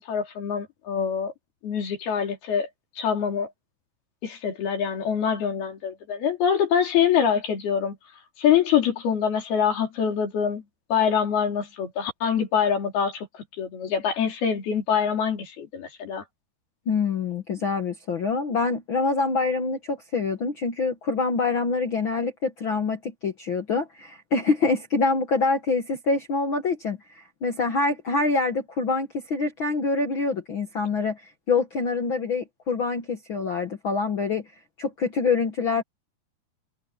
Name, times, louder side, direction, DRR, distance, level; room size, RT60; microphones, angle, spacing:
voice 1, 0.0-1.3 1.6-2.7 3.0-3.5 4.2-8.0 8.4-10.6 10.9-13.3 13.6-16.2, left 8 dB, 80° left, 5.6 m, -24 dB
voice 2, 16.9-34.5 34.8-35.8, left 4 dB, 65° left, 1.2 m, -25 dB
omnidirectional pair, 4.4 m